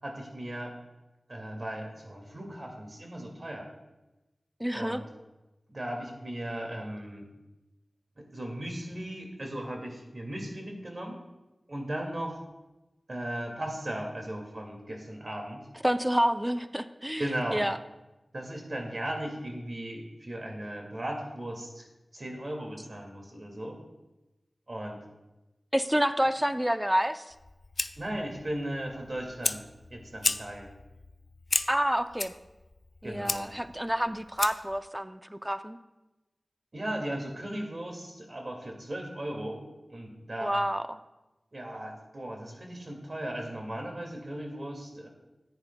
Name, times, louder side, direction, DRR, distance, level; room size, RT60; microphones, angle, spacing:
voice 1, 0.0-0.7 1.3-3.7 4.7-5.0 5.7-7.2 8.2-11.2 11.7-12.4 13.1-15.6 17.2-17.6 18.3-21.8 22.1-23.8 24.7-25.0 28.0-29.6 29.9-30.7 33.0-33.5 36.7-39.6 39.9-40.5 41.5-45.1, right 1 dB, 55° right, 1 dB, 2.1 m, -37 dB
voice 2, 4.6-5.0 15.8-17.8 25.7-27.3 31.7-32.3 33.0-35.8 40.4-41.0, equal, 10° right, 11 dB, 0.4 m, -28 dB
Fire, 27.3-34.8, left 3 dB, 65° left, 0.4 m, -35 dB
14.0 x 9.7 x 2.2 m, 1.0 s
wide cardioid pair, 50°, 0 cm